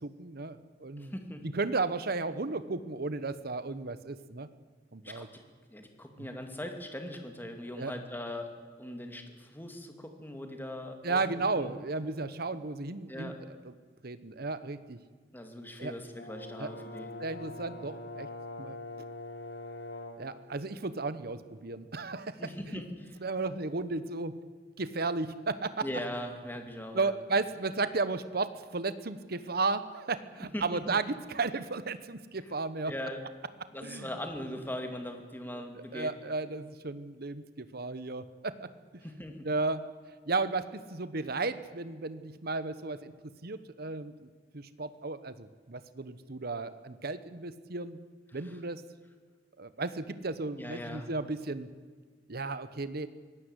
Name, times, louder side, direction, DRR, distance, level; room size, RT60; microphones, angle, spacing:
voice 1, 0.0-1.1 1.4-4.5 4.9-5.3 6.2-6.3 7.8-7.9 11.0-13.7 14.0-15.0 15.8-15.9 16.6-16.7 17.2-18.3 18.6-18.8 20.2-22.4 22.7-22.8 23.2-24.4 24.8-25.8 26.9-32.9 33.8-34.1 35.9-39.0 39.4-39.9 40.3-43.1 43.4-44.1 44.5-48.0 48.3-48.8 49.6-51.7 52.3-53.1, right 3 dB, 55° right, 13 dB, 1.1 m, -34 dB
voice 2, 1.0-1.4 5.0-5.3 5.7-8.5 8.8-11.2 11.6-11.7 13.1-13.4 15.3-17.1 22.4-23.2 25.8-27.2 30.5-31.0 32.9-33.2 33.7-36.1 39.0-39.5 50.6-51.1, left 1 dB, 10° left, 4 dB, 2.5 m, -40 dB
Brass instrument, 16.1-20.3, left 2 dB, 70° left, 4.1 m, -43 dB
23.5 x 18.0 x 8.2 m, 1.5 s
head